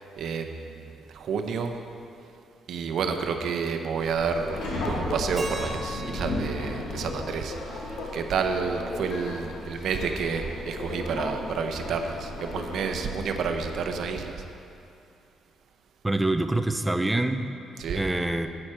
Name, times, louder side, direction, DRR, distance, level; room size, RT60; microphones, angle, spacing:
voice 1, 0.2-1.8 2.7-14.4 17.8-18.0, right 5 dB, 70° right, 6 dB, 0.8 m, -30 dB
Subway metro underground, 4.0-14.0, left 1 dB, 80° left, 2.1 m, -35 dB
Keyboard (musical), 5.4-8.3, right 1 dB, 25° right, 1.6 m, -40 dB
voice 2, 16.0-17.5 17.9-18.5, right 2 dB, 10° right, 7 dB, 0.6 m, -25 dB
11.0 x 8.8 x 4.4 m, 2.5 s
cardioid pair, 90°, 0 cm